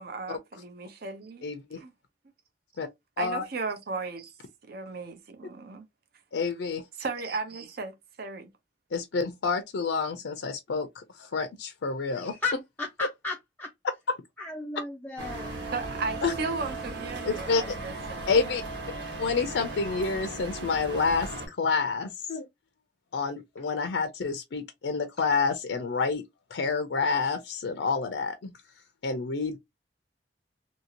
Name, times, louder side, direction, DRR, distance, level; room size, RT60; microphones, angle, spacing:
voice 1, 0.0-1.5 1.8-1.9 3.2-4.3 4.7-5.8 7.0-8.5 15.7-18.3, right 4 dB, 60° right, 0.7 m, -35 dB
voice 2, 1.4-1.8 2.8-2.9 3.2-3.4 6.3-6.8 8.9-12.3 16.2-16.3 17.3-17.6 18.3-18.6 19.2-22.5 23.1-26.2 26.5-28.5 29.0-29.6, left 4 dB, 80° left, 0.5 m, -28 dB
voice 3, 12.1-13.7 14.4-15.5, left 4 dB, 10° left, 0.4 m, -34 dB
sound 1, 15.2-21.5, right 2 dB, 80° right, 1.3 m, -37 dB
2.8 x 2.7 x 2.8 m
head